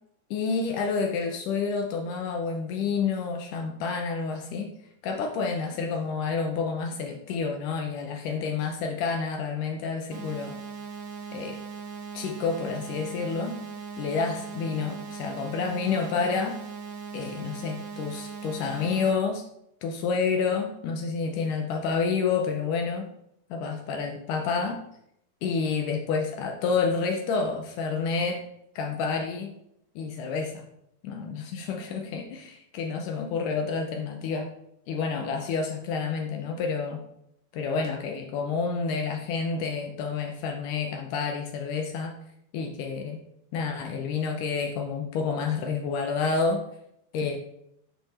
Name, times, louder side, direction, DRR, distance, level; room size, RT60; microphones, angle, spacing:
voice 1, 0.3-4.7 5.0-10.5 11.3-11.6 12.1-13.6 14.0-16.6 17.1-19.4 19.8-23.1 23.5-24.8 25.4-28.4 28.8-29.5 30.0-30.6 31.0-34.5 34.9-37.0 37.5-42.1 42.5-43.2 43.5-46.6 47.1-47.4, left 5 dB, 80° left, 3 dB, 1.9 m, -29 dB
sound 1, 10.1-19.1, right 6 dB, 75° right, 1.6 m, -39 dB
8.6 x 5.7 x 4.2 m, 0.77 s
omnidirectional pair, 4.6 m